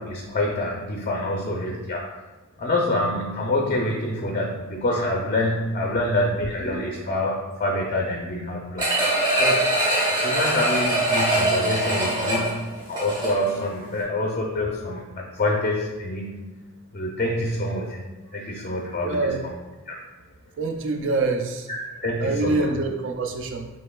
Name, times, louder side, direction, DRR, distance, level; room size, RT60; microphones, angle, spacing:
voice 1, 0.0-2.1 2.6-8.9 9.4-9.6 10.2-16.5 16.9-18.0 18.3-19.3 19.9-20.0 21.7-21.8 22.0-22.7, left 1 dB, 35° left, -1 dB, 0.5 m, -26 dB
sound 1, 8.8-13.6 14.0-14.1, right 1 dB, 20° right, 1.2 m, -22 dB
voice 2, 19.0-19.4 20.6-21.7 22.2-23.7, right 3 dB, 55° right, 5 dB, 0.4 m, -25 dB
6.3 x 3.0 x 2.3 m, 1.2 s
head